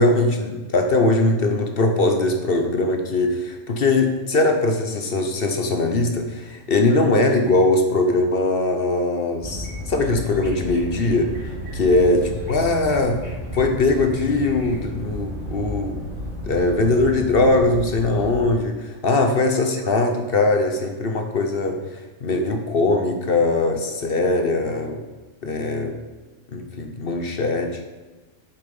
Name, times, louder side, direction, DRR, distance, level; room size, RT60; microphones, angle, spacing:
voice 1, 0.0-11.3 11.8-12.2 12.5-13.2 13.5-15.9 16.4-25.0 25.4-26.0 26.5-27.7, left 2 dB, 50° left, 4 dB, 1.2 m, -21 dB
sound 1, 9.4-18.4, equal, 70° right, 3.2 m, -32 dB
8.6 x 7.5 x 5.5 m, 1.2 s
omnidirectional pair, 1.3 m